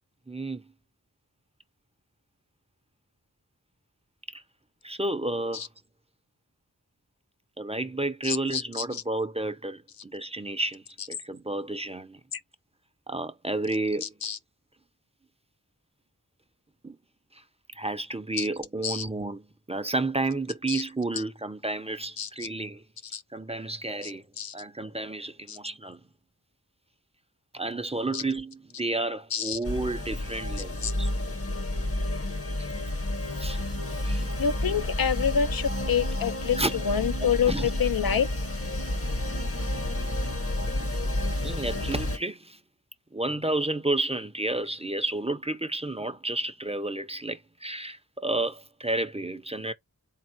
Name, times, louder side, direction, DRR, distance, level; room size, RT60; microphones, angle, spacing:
voice 1, 0.3-0.6 4.3-4.4 4.8-5.7 7.6-12.2 13.1-14.1 16.8-17.0 17.7-22.8 23.3-24.2 24.5-26.0 27.5-31.1 32.6-32.7 33.4-33.6 34.0-34.3 36.6-36.8 37.2-37.7 41.4-42.6 43.1-49.7, right 2 dB, 15° right, 0.6 m, -31 dB
voice 2, 8.2-9.0 14.0-14.4 18.4-18.5 18.8-19.0 20.7-20.8 22.2-22.3 23.1-23.2 24.0-24.1 24.4-24.5 25.5-25.6 28.1-28.2 29.3-29.6 30.8-30.9 34.4-38.3, left 7 dB, 70° left, 0.5 m, -27 dB
sound 1, 29.6-42.2, left 1 dB, 40° left, 0.8 m, -30 dB
3.9 x 2.6 x 4.4 m
wide cardioid pair, 45°, 37 cm